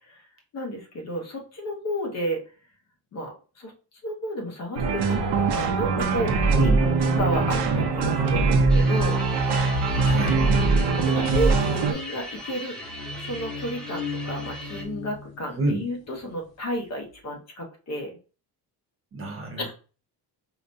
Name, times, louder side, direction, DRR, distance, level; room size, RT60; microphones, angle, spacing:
voice 1, 0.5-2.4 3.1-3.7 4.0-6.7 7.2-9.2 11.0-12.8 13.2-18.2 19.6-19.7, equal, 40° left, 2 dB, 0.8 m, -32 dB
sound 1, 4.8-11.9, right 3 dB, 80° right, 0.7 m, -22 dB
voice 2, 6.5-6.9 10.0-10.5 15.6-15.8 19.1-19.7, right 2 dB, 35° right, 1 dB, 0.8 m, -28 dB
sound 2, 8.7-14.8, equal, ahead, 0.6 m, -38 dB
sound 3, 11.9-16.4, left 4 dB, 75° left, 0.9 m, -38 dB
4.8 x 2.2 x 2.6 m, 0.36 s
cardioid pair, 175°, 39 cm